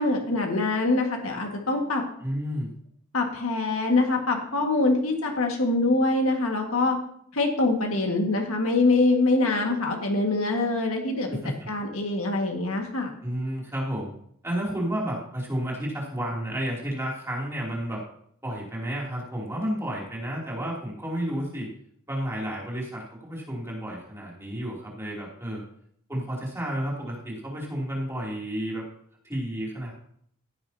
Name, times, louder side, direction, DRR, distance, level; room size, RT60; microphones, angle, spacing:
voice 1, 0.0-2.1 3.1-7.0 7.3-13.1, left 2 dB, 75° left, 2 dB, 1.8 m, -24 dB
voice 2, 2.2-2.7 11.3-11.5 13.2-14.1 14.4-18.0 18.4-21.7 22.1-25.6 26.1-28.8 29.2-29.9, equal, 10° right, -4 dB, 2.9 m, -31 dB
15.0 x 8.7 x 2.8 m, 0.66 s
head